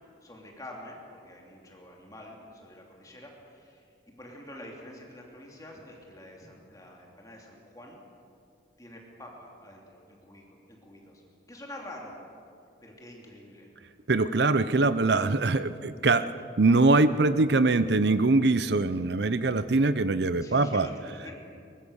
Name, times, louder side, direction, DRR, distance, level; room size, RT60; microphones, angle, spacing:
voice 1, 0.2-8.0 8.8-11.2 11.5-12.2 12.8-13.7 20.4-21.4, left 1 dB, 20° left, -1 dB, 3.0 m, -47 dB
voice 2, 14.1-16.3 16.6-20.9, right 3 dB, 65° right, 13 dB, 0.7 m, -23 dB
22.5 x 21.0 x 6.5 m, 2.4 s
head